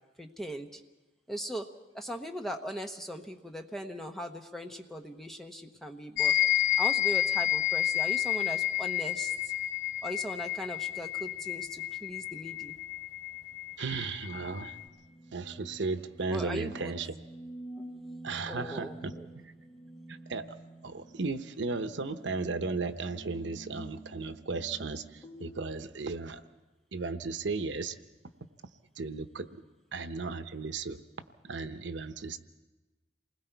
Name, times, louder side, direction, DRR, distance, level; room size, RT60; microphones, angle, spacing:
voice 1, 0.2-0.8 1.3-1.7 1.9-6.3 6.8-9.5 10.0-12.7 16.3-16.9 18.5-19.3, equal, ahead, 4 dB, 1.0 m, -39 dB
sound 1, 6.2-14.9, left 13 dB, 75° left, 3.3 m, -30 dB
voice 2, 13.8-14.8 15.3-17.2 18.2-19.1 20.1-20.6 20.8-26.4 26.9-28.0 29.0-29.6 29.9-31.0 31.4-32.4, right 4 dB, 90° right, 10 dB, 0.9 m, -35 dB
sound 2, 13.9-25.7, right 1 dB, 20° left, 2.3 m, -49 dB
28.0 x 20.5 x 4.6 m, 1.1 s
head